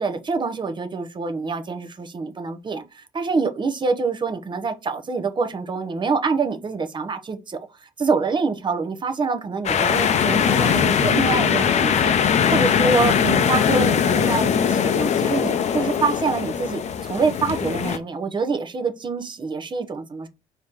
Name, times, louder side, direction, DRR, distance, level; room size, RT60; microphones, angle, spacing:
voice 1, 0.0-20.3, right 4 dB, 30° right, 0.8 m, -26 dB
sound 1, 9.6-18.0, left 7 dB, 45° left, 0.6 m, -20 dB
4.7 x 2.9 x 3.6 m
supercardioid pair, 85°, 16 cm